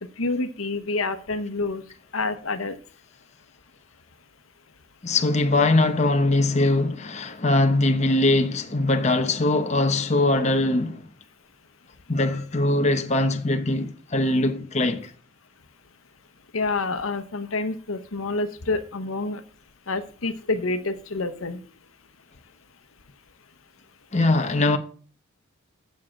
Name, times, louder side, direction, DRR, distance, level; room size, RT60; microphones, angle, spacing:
voice 1, 0.0-1.8 2.1-2.8 16.5-19.4 19.9-21.6, left 3 dB, 80° left, 1.0 m, -28 dB
voice 2, 5.0-11.0 12.1-15.1 24.1-24.8, left 2 dB, 35° left, 0.9 m, -21 dB
7.5 x 7.4 x 7.5 m
head